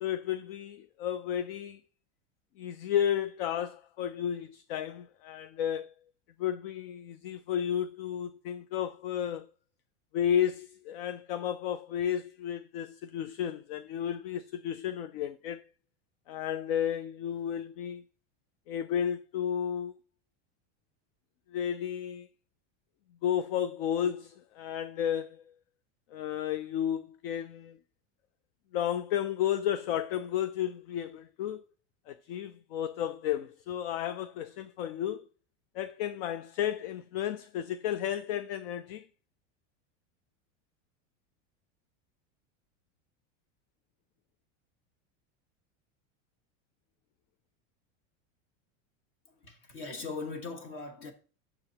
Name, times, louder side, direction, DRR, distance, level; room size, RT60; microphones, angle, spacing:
voice 1, 0.0-1.8 2.6-5.9 6.4-9.5 10.1-15.6 16.3-18.0 18.7-19.9 21.5-22.3 23.2-25.5 26.1-27.8 28.7-31.6 32.1-35.3 35.7-39.1, left 9 dB, 50° left, 0.4 m, -32 dB
voice 2, 49.3-51.1, left 4 dB, 35° left, 1.4 m, -40 dB
8.8 x 6.7 x 2.8 m
supercardioid pair, 175°, 37 cm